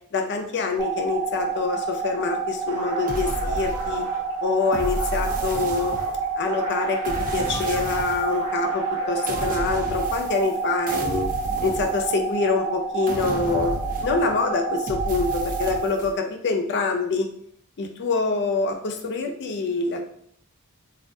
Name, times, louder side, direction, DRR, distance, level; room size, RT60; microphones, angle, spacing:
voice 1, 0.1-4.0 4.4-6.0 6.4-11.3 11.6-13.7 14.0-17.3 17.8-20.0, left 4 dB, 50° left, 4 dB, 0.4 m, -25 dB
sound 1, 0.8-15.8, right 5 dB, 20° right, 0.8 m, -28 dB
sound 2, 2.6-10.0, equal, 85° right, 0.8 m, -38 dB
sound 3, 3.1-4.2 4.7-6.3 7.0-8.4 9.3-10.6 10.9-12.5 13.1-14.4 14.9-16.1, right 1 dB, 35° right, 0.4 m, -32 dB
3.4 x 2.3 x 2.6 m, 0.65 s
head